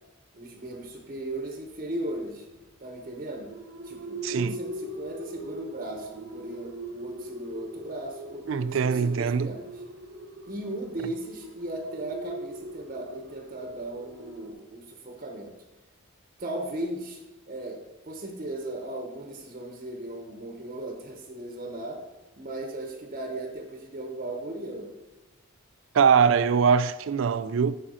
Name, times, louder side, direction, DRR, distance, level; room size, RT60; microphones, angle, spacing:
voice 1, 0.3-2.5 2.8-3.5 3.8-9.8 10.5-15.6 16.4-17.2 17.5-22.0 22.4-24.9, right 1 dB, 40° right, 0.8 m, -37 dB
sound 1, 0.6-14.5, right 1 dB, 85° right, 0.9 m, -41 dB
voice 2, 4.2-4.5 8.5-9.5 25.9-27.8, right 6 dB, 70° right, 0.4 m, -22 dB
7.4 x 7.3 x 4.2 m
head